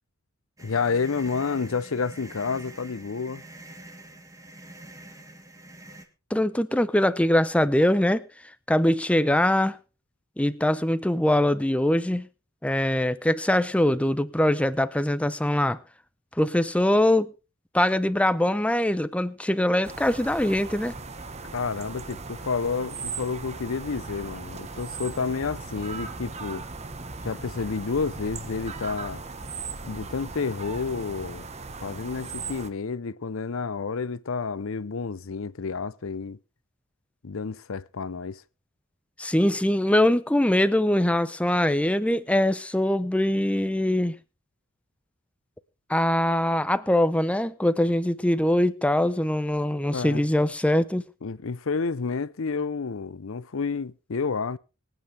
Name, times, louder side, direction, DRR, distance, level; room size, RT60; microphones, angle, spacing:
voice 1, 0.6-3.4 21.5-26.7 27.2-29.2 29.8-31.5 31.8-36.4 37.2-38.4 49.9-50.2 51.2-54.6, left 4 dB, 65° left, 0.6 m, -30 dB
sound 1, 0.6-6.1, right 1 dB, 15° right, 1.7 m, -46 dB
voice 2, 6.3-8.2 8.7-9.8 10.4-12.3 12.6-15.8 16.4-17.3 17.7-20.9 39.2-44.1 45.9-51.0, left 1 dB, 5° left, 0.6 m, -22 dB
sound 2, 19.8-32.7, right 4 dB, 30° right, 1.1 m, -38 dB
24.5 x 9.0 x 3.4 m
head